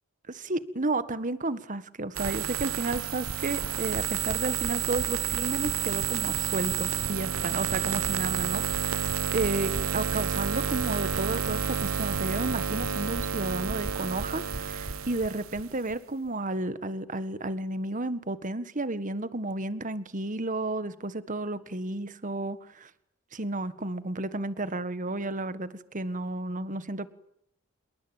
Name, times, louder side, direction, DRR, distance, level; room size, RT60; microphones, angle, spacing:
voice 1, 0.3-22.6 23.3-27.1, right 2 dB, 40° right, 13 dB, 1.7 m, -32 dB
sound 1, 2.2-16.0, right 7 dB, 85° right, 1.0 m, -30 dB
27.5 x 22.0 x 9.1 m, 0.71 s
head